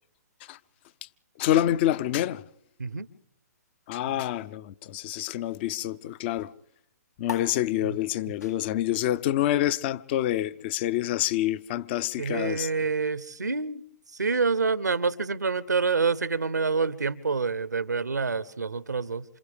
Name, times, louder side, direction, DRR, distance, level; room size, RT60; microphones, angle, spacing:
voice 1, 1.4-2.4 3.9-6.5 7.2-12.7, left 13 dB, 40° left, 0.7 m, -27 dB
sound 1, 7.2-14.1, left 8 dB, 75° left, 1.7 m, -46 dB
voice 2, 12.2-13.8 14.1-19.2, right 4 dB, 90° right, 0.9 m, -27 dB
28.0 x 27.0 x 3.5 m
figure-of-eight pair, 125°, 9 cm